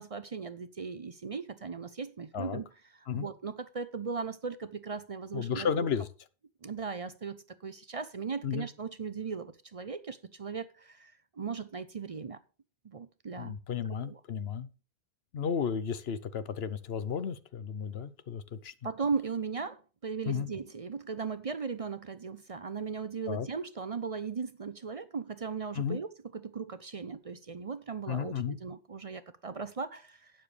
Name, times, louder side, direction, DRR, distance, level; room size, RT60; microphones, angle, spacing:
voice 1, 0.0-2.7 2.9-5.9 6.6-12.4 12.8-13.6 14.0-14.2 18.8-19.8 20.0-26.1 26.3-30.3, right 5 dB, 40° right, 0.6 m, -37 dB
voice 2, 5.3-6.1 8.4-8.7 13.4-14.7 15.3-18.7 20.3-20.5 23.3-23.5 25.7-26.0 28.1-28.6, left 7 dB, 80° left, 1.0 m, -33 dB
12.0 x 8.9 x 3.3 m
omnidirectional pair, 1.0 m